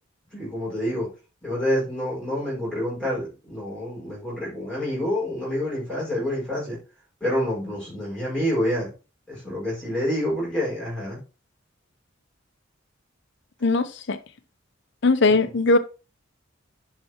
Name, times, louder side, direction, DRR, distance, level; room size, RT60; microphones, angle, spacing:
voice 1, 0.3-1.1 1.4-6.8 7.2-8.9 9.3-11.2 15.2-15.4, equal, 5° left, 5.1 m, -27 dB
voice 2, 13.6-14.2 15.0-15.8, left 3 dB, 60° left, 0.7 m, -19 dB
11.0 x 5.6 x 2.9 m
head